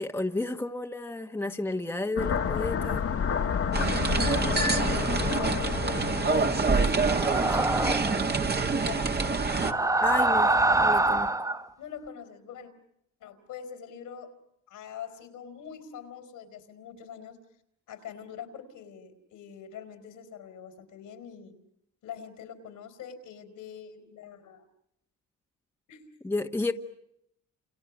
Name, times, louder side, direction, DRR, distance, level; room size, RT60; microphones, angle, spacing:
voice 1, 0.0-3.0 10.0-11.3 26.2-26.7, left 2 dB, 5° left, 5 dB, 1.4 m, -31 dB
sound 1, 2.2-7.1, left 7 dB, 50° left, 1.7 m, -30 dB
sound 2, 3.7-9.7, right 4 dB, 35° right, 2.0 m, -26 dB
voice 2, 4.2-9.4 11.8-12.7 13.2-14.3 14.7-17.4 17.9-21.6 22.0-24.6 25.9-26.2, left 8 dB, 85° left, 8 dB, 4.4 m, -44 dB
sound 3, 7.0-8.2 9.5-11.6, right 2 dB, 10° right, 1.0 m, -25 dB
29.5 x 28.5 x 6.3 m, 0.77 s
cardioid pair, 90°, 30 cm